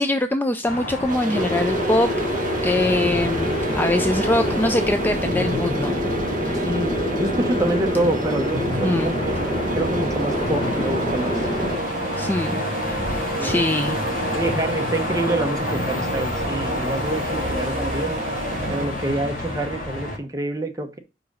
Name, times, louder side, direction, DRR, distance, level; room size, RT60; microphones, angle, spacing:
voice 1, 0.0-2.1 2.6-6.0 6.4-6.6 8.8-9.1 12.2-12.6 12.8-14.0, left 1 dB, 10° left, 0.3 m, -23 dB
sound 1, 0.6-20.2, left 1 dB, 50° left, 2.7 m, -29 dB
sound 2, 1.1-18.9, right 4 dB, 45° right, 0.5 m, -31 dB
sound 3, 1.3-11.8, equal, 30° left, 1.3 m, -26 dB
voice 2, 7.2-9.4 9.8-11.4 13.4-13.6 14.3-18.1 18.7-21.0, right 1 dB, 20° right, 1.0 m, -26 dB
5.1 x 4.8 x 6.1 m
head